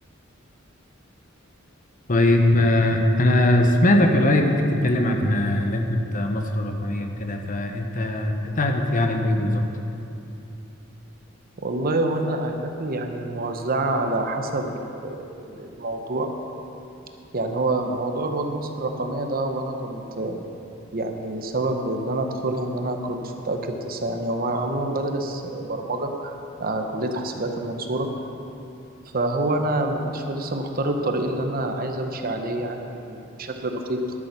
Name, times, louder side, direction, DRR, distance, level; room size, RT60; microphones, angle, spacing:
voice 1, 2.1-4.4 4.8-9.6, left 1 dB, 40° left, 4 dB, 0.9 m, -21 dB
voice 2, 11.6-16.3 17.3-20.4 20.9-28.1 29.1-34.0, right 2 dB, 45° right, 4 dB, 0.9 m, -27 dB
11.5 x 8.6 x 6.1 m, 2.7 s
head